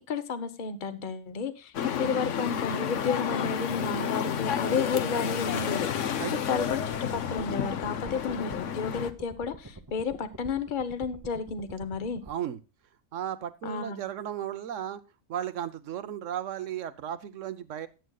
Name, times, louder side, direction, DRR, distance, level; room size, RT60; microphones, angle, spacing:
voice 1, 0.1-6.2 6.5-12.2 13.6-14.0, left 5 dB, 40° left, 11 dB, 1.0 m, -32 dB
sound 1, 1.7-9.1, left 8 dB, 65° left, 1.1 m, -31 dB
voice 2, 6.1-6.4 12.3-12.6 13.1-15.0 15.3-17.9, right 10 dB, 65° right, 14 dB, 1.1 m, -35 dB
sound 2, 6.6-12.3, right 2 dB, 15° right, 0.8 m, -46 dB
18.0 x 8.0 x 2.3 m, 0.30 s
omnidirectional pair, 1.5 m